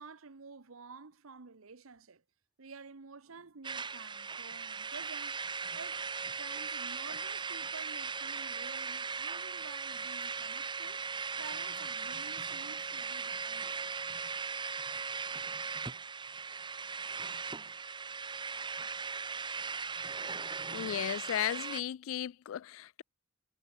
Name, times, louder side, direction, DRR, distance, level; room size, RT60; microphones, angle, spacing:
voice 1, 0.0-2.2 2.6-11.0 11.4-13.9, right 4 dB, 85° right, 1.0 m, -51 dB
sound 1, 3.6-21.8, right 5 dB, 20° right, 1.1 m, -38 dB
voice 2, 20.7-23.0, left 10 dB, 70° left, 0.3 m, -35 dB
head